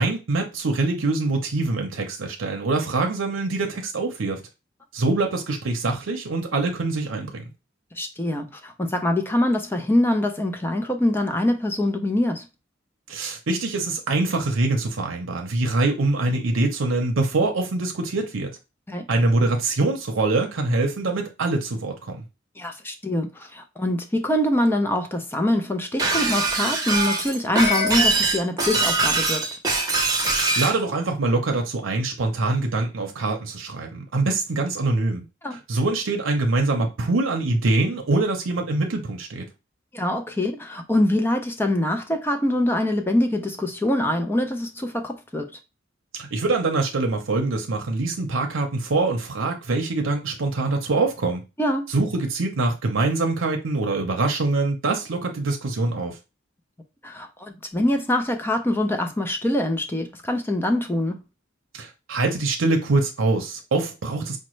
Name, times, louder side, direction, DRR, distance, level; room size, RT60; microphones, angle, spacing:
voice 1, 0.0-4.4 4.9-7.4 13.1-18.5 19.1-22.2 30.3-35.2 35.5-39.5 46.1-51.4 51.9-56.2 61.7-64.4, right 2 dB, 80° right, 0.7 m, -24 dB
voice 2, 8.0-12.5 18.9-19.0 22.6-29.5 35.4-35.6 39.9-45.5 51.6-51.9 57.0-61.2, left 1 dB, 10° left, 0.4 m, -24 dB
Shatter, 26.0-30.8, right 2 dB, 20° right, 0.8 m, -22 dB
5.1 x 2.1 x 3.1 m
head